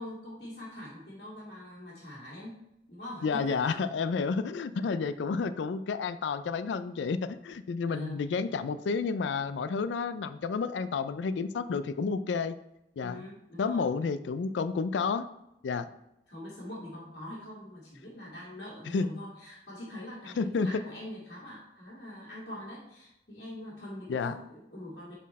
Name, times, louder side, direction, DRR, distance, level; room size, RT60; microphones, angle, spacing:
voice 1, 0.0-2.6 2.9-3.8 7.9-8.2 13.0-13.9 16.3-25.1, left 1 dB, 55° left, -9 dB, 2.0 m, -43 dB
voice 2, 3.2-12.5 13.0-13.2 13.6-15.3 15.6-15.9 18.9-19.1 20.4-20.7 24.1-24.3, left 5 dB, 80° left, 13 dB, 0.4 m, -30 dB
7.3 x 4.3 x 4.2 m, 0.84 s
head